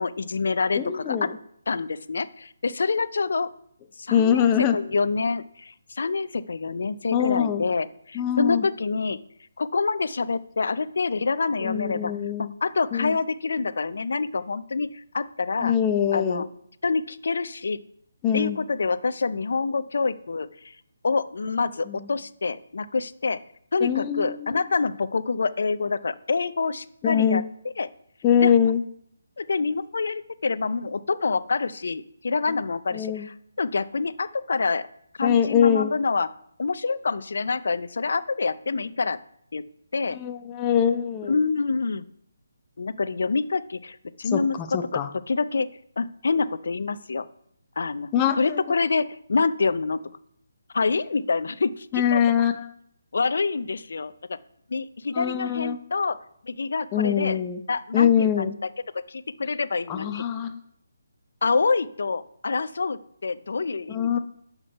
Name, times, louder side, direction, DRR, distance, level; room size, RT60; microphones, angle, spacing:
voice 1, 0.0-1.3 1.7-3.5 4.0-4.5 4.7-9.2 9.6-12.1 12.4-15.7 16.1-16.5 16.8-17.8 18.3-20.5 21.0-23.4 23.7-27.4 27.8-27.9 28.4-28.5 29.4-34.9 35.2-36.3 36.6-39.2 39.5-39.6 39.9-40.2 41.3-42.1 42.8-44.6 44.9-45.0 45.3-45.7 46.0-47.3 47.8-48.1 48.4-50.0 50.7-51.9 52.1-52.2 53.1-54.4 54.7-56.2 56.4-57.4 57.7-58.5 59.1-60.2 61.4-64.2, left 4 dB, 65° left, 15 dB, 0.5 m, -26 dB
voice 2, 0.7-1.4 4.1-4.8 7.1-7.6 8.1-8.7 11.6-12.5 12.9-13.2 15.6-16.5 18.2-18.6 21.9-22.1 23.8-24.6 27.0-27.4 28.2-28.8 32.9-33.3 35.2-35.9 40.1-41.4 44.3-45.1 48.1-48.6 51.9-52.7 55.1-55.8 56.9-57.6 57.9-58.6 59.9-60.6 63.9-64.2, left 8 dB, 20° left, 7 dB, 0.7 m, -23 dB
6.3 x 6.1 x 5.5 m, 0.71 s
figure-of-eight pair, 155°, 0 cm